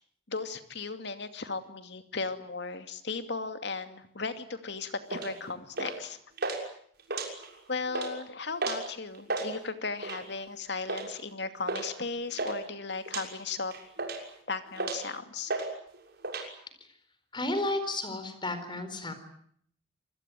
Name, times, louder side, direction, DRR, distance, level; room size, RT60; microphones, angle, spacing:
voice 1, 0.3-6.2 7.7-13.7 14.5-15.5, left 4 dB, 60° left, 9 dB, 2.6 m, -36 dB
sound 1, 5.1-5.3 5.8-6.1 6.4-6.6 7.0-7.6 7.9-8.1 8.6-8.8 9.1-9.5 10.0-10.3 10.9-11.1 11.7-11.9 12.1-12.6 13.1-13.3 13.7-14.3 14.8-15.1 15.5-15.7 15.9-16.5, right 3 dB, 55° right, 6.5 m, -33 dB
voice 2, 17.3-19.1, left 2 dB, 25° left, 10 dB, 4.4 m, -32 dB
27.0 x 20.5 x 9.4 m, 0.65 s
head